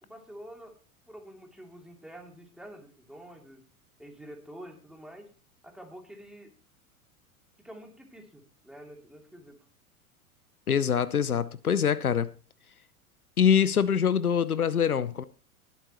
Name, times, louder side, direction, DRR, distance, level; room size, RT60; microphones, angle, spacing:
voice 1, 0.0-0.7 1.1-3.6 4.0-5.3 5.6-6.5 7.6-9.7, right 1 dB, ahead, 2.8 m, -47 dB
voice 2, 10.7-12.3 13.4-15.2, left 8 dB, 85° left, 0.8 m, -24 dB
20.0 x 8.0 x 3.0 m
figure-of-eight pair, 90°, 43 cm